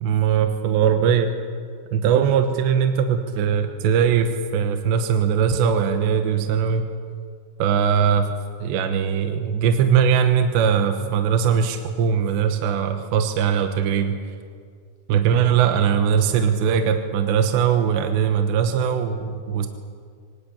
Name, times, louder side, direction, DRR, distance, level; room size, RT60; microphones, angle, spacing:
voice 1, 0.0-1.3 1.9-6.9 7.6-8.3 8.6-14.2 15.1-19.7, right 7 dB, 75° right, 6 dB, 3.1 m, -20 dB
25.5 x 20.0 x 8.6 m, 2.2 s
omnidirectional pair, 5.5 m